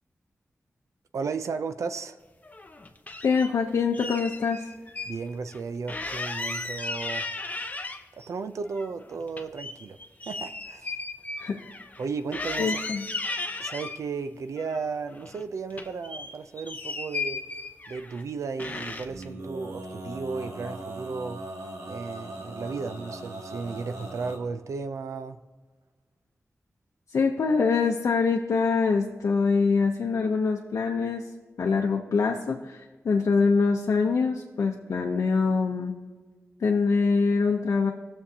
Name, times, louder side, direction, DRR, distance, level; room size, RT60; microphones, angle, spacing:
voice 1, 1.1-2.2 5.1-7.3 8.3-10.0 10.3-11.0 12.0-12.8 13.6-17.4 17.9-21.5 21.9-25.4, right 4 dB, 90° right, 0.5 m, -34 dB
sound 1, 2.4-3.5 3.9-5.2 5.5-5.6 5.9-8.3 8.6-12.1 12.3-14.0 14.6-15.4 15.7-18.2 18.6-19.3, left 3 dB, 30° left, 0.8 m, -35 dB
voice 2, 3.2-4.7 11.4-11.7 12.6-13.1 27.1-31.3 31.6-36.0 36.6-37.9, left 4 dB, 90° left, 0.7 m, -24 dB
Male singing, 19.1-24.4, right 1 dB, 70° right, 2.1 m, -39 dB
18.0 x 7.0 x 2.8 m
wide cardioid pair, 95°, 5 cm